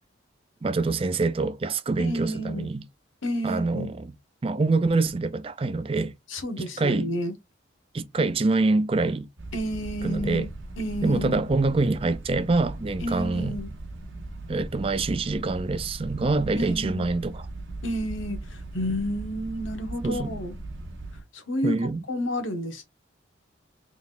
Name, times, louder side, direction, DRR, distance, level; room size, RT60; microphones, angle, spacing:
voice 1, 0.6-2.8 3.4-3.9 4.4-6.1 6.6-7.1 7.9-9.3 10.0-10.5 11.0-13.6 14.5-17.4 20.0-20.3 21.6-22.0, right 3 dB, 30° right, 0.4 m, -25 dB
voice 2, 2.0-2.7 3.2-3.9 6.3-7.3 9.5-10.5 10.8-11.4 13.0-13.7 16.5-17.1 17.8-20.6 21.3-21.8 22.1-22.8, equal, 80° left, 1.2 m, -30 dB
sound 1, 9.4-21.2, right 2 dB, 70° right, 1.2 m, -38 dB
3.9 x 3.5 x 2.5 m
head